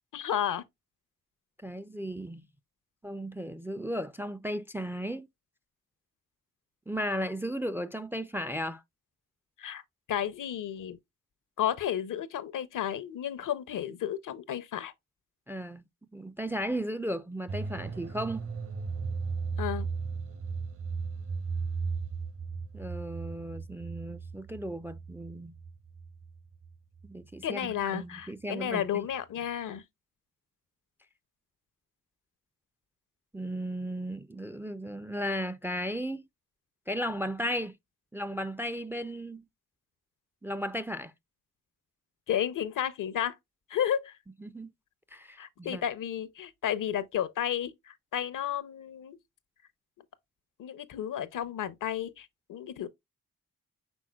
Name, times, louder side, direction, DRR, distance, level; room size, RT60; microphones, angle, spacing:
voice 1, 0.1-0.6 9.6-9.8 10.1-11.0 11.6-14.9 19.6-19.9 27.4-29.8 42.3-43.4 43.7-44.2 45.4-49.2 50.6-52.9, left 10 dB, 65° left, 0.6 m, -32 dB
voice 2, 1.6-2.5 3.0-5.3 6.9-8.8 15.5-15.8 16.1-18.5 22.7-25.5 27.0-28.9 33.3-36.2 36.9-37.8 38.1-39.5 40.4-41.1 44.4-44.7 45.1-45.8, equal, 5° right, 0.3 m, -35 dB
sound 1, 17.5-27.4 27.6-27.7, right 5 dB, 40° right, 0.8 m, -36 dB
6.2 x 3.7 x 2.2 m
supercardioid pair, 50°, 33 cm